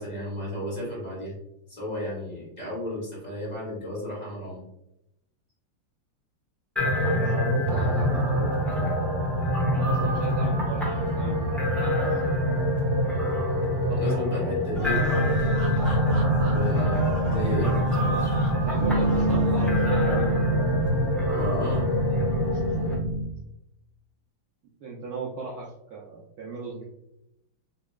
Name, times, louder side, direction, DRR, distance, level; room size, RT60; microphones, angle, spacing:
voice 1, 0.0-1.3 1.7-4.6 7.7-8.0 9.9-10.2 13.9-15.1 16.4-18.4 21.3-21.9, equal, 25° left, -7 dB, 1.3 m, -33 dB
sound 1, 6.8-22.9, equal, ahead, 0.6 m, -25 dB
voice 2, 7.0-8.7 9.7-11.4 11.8-11.9 13.9-14.7 18.6-20.3 24.8-26.8, right 4 dB, 75° right, -4 dB, 0.8 m, -36 dB
sound 2, 14.7-19.9, equal, 45° left, 1.2 m, -40 dB
sound 3, 14.7-23.2, right 1 dB, 40° right, 1.6 m, -28 dB
4.3 x 2.9 x 2.3 m, 0.84 s
omnidirectional pair, 2.3 m